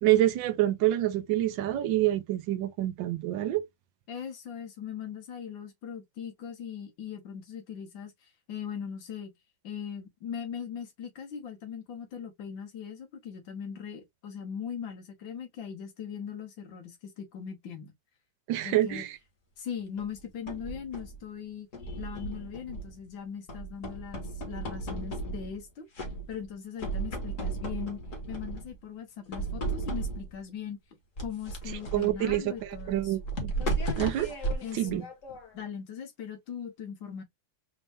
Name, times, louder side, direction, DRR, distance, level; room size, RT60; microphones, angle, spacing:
voice 1, 0.0-3.6 18.5-19.1 31.9-33.5 34.0-34.3 34.7-35.0, right 14 dB, 90° right, 1.4 m, -27 dB
voice 2, 4.1-9.3 9.6-17.9 18.6-19.1 19.6-21.7 22.0-25.9 26.3-28.0 28.3-30.8 31.2-33.2 34.6-35.1 35.5-37.2, left 7 dB, 85° left, 1.9 m, -40 dB
sound 1, 20.0-21.2 21.7-23.1 23.5-25.6 26.0-26.5 26.8-28.8 29.3-30.4 31.2-35.7, right 2 dB, 45° left, 1.7 m, -35 dB
4.2 x 2.6 x 3.4 m
omnidirectional pair, 2.0 m